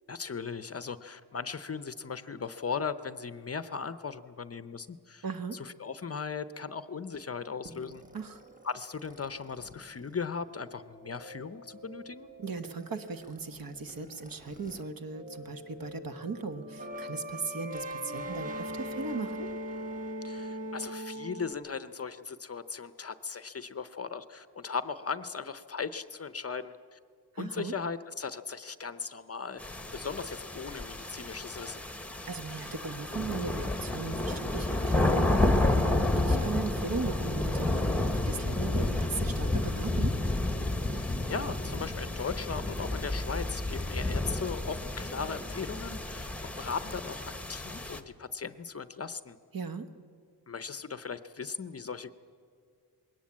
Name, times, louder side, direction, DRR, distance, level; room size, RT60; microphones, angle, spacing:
voice 1, 0.1-5.2 5.5-8.0 8.6-12.3 20.2-27.0 27.4-29.6 29.9-31.8 40.9-49.4 50.5-52.1, left 5 dB, 35° left, 13 dB, 0.6 m, -38 dB
voice 2, 5.2-5.6 8.1-8.4 12.4-19.5 27.3-27.7 32.3-37.9 38.2-40.1 49.5-49.9, right 4 dB, 55° right, 8 dB, 1.3 m, -38 dB
sound 1, 7.6-14.8 15.1-21.5, equal, 20° right, 1.4 m, -42 dB
sound 2, 29.6-48.0, left 2 dB, 5° left, 1.1 m, -30 dB
21.5 x 18.0 x 8.6 m, 2.3 s
wide cardioid pair, 135°, 42 cm